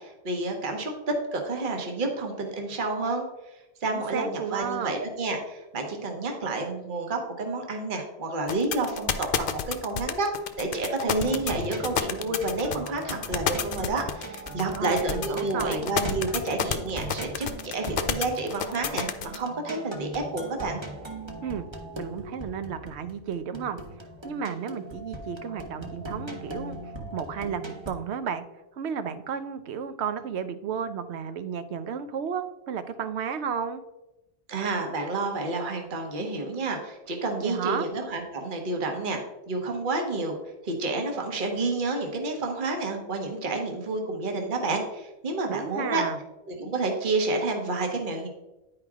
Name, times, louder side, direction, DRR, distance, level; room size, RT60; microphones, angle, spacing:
voice 1, 0.0-3.3 3.5-20.8 34.5-40.4 40.6-46.0 46.5-48.3, right 2 dB, 50° right, 3 dB, 1.2 m, -30 dB
voice 2, 3.9-5.0 14.6-15.9 21.4-21.7 22.0-23.8 24.2-26.8 27.1-28.4 28.7-33.8 37.4-37.9 45.5-46.2, right 7 dB, 85° right, 11 dB, 0.9 m, -33 dB
sound 1, 8.5-19.4, left 8 dB, 60° left, 0.7 m, -29 dB
sound 2, 11.2-27.9, right 2 dB, 25° right, 0.9 m, -39 dB
9.9 x 4.8 x 3.6 m, 1.0 s
omnidirectional pair, 1.1 m